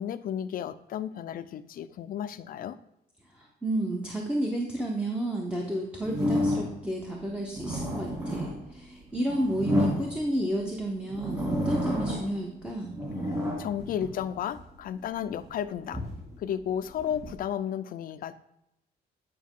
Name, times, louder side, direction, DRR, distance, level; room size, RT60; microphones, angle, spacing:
voice 1, 0.0-2.8 13.3-16.1 16.4-18.3, left 9 dB, 55° left, 12 dB, 0.4 m, -33 dB
voice 2, 3.3-12.9, right 1 dB, 5° right, -2 dB, 0.7 m, -31 dB
sound 1, 6.0-6.9 7.4-10.6 11.1-12.4 12.7-14.7 15.2-17.3, equal, 20° right, 2.5 m, -31 dB
9.4 x 5.3 x 3.7 m, 0.83 s
cardioid pair, 175°, 17 cm